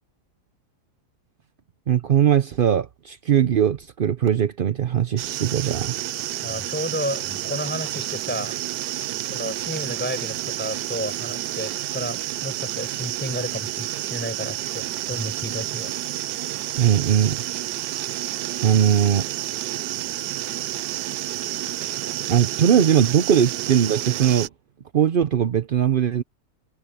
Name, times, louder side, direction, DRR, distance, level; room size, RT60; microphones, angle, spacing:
voice 1, 1.9-6.0 16.8-17.4 18.6-19.3 21.7-21.9 22.3-24.5 24.9-26.2, right 9 dB, 65° right, 0.5 m, -20 dB
sound 1, 5.2-24.5, right 14 dB, 90° right, 1.2 m, -30 dB
voice 2, 6.4-8.6 9.2-16.0, equal, 5° left, 6.0 m, -32 dB
omnidirectional pair, 1.8 m